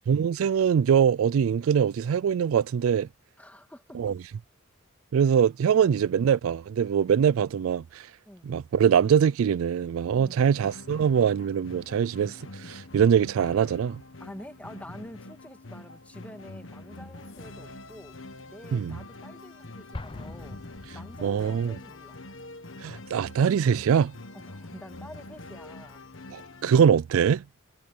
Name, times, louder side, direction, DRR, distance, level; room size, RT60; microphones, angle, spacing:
voice 1, 0.1-3.1 3.9-4.1 5.1-8.1 8.4-14.0 18.7-19.0 21.2-21.7 22.8-24.1 26.3-27.4, right 7 dB, 75° right, 0.3 m, -23 dB
voice 2, 3.4-4.1 5.7-6.0 8.3-8.6 10.1-10.5 14.2-20.7 20.9-22.2 24.3-26.1, equal, 5° left, 1.8 m, -47 dB
sound 1, 10.4-26.8, left 2 dB, 65° left, 1.5 m, -45 dB
Explosion, 19.9-21.7, left 2 dB, 25° left, 0.5 m, -42 dB
head